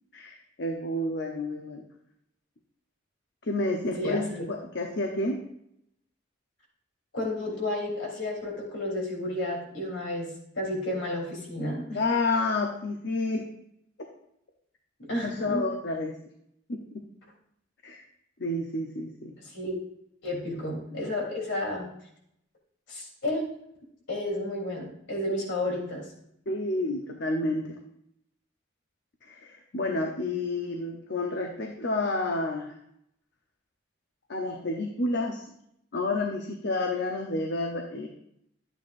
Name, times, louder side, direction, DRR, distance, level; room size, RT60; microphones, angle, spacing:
voice 1, 0.1-1.8 3.4-5.4 11.9-13.5 15.2-16.2 16.7-17.1 17.8-18.0 18.4-19.4 20.5-20.6 26.5-27.7 29.2-32.7 34.3-35.5 35.9-38.1, left 2 dB, 60° left, 2 dB, 0.9 m, -30 dB
voice 2, 3.9-4.4 7.1-12.0 15.0-15.6 19.4-19.8 20.2-21.9 22.9-23.5 24.1-26.1, left 1 dB, 75° left, -2 dB, 3.5 m, -31 dB
11.5 x 9.1 x 2.6 m, 0.75 s
head